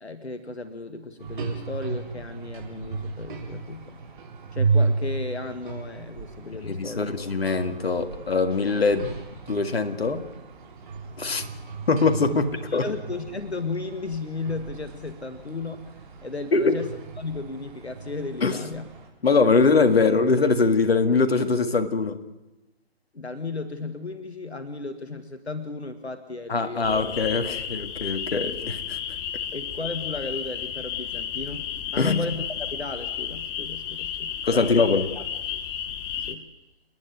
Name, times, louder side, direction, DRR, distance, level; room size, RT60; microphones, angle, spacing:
voice 1, 0.0-4.0 4.5-7.1 12.3-12.4 12.7-15.9 16.2-18.9 23.1-26.9 29.5-34.9 35.1-35.2 35.5-35.6 36.3-36.5, left 3 dB, 85° left, 9 dB, 1.6 m, -34 dB
sound 1, 1.2-19.1, right 4 dB, 50° right, 4.3 m, -33 dB
voice 2, 6.7-9.1 9.5-10.2 11.2-11.4 11.9-12.5 12.7-12.8 16.5-16.8 18.4-18.6 19.2-22.2 26.5-29.0 32.0-32.2 34.4-35.1, left 4 dB, 70° left, 8 dB, 2.0 m, -22 dB
sound 2, 26.8-36.4, left 9 dB, 15° left, 0.8 m, -33 dB
29.5 x 10.0 x 9.4 m, 1.0 s
figure-of-eight pair, 135°, 32 cm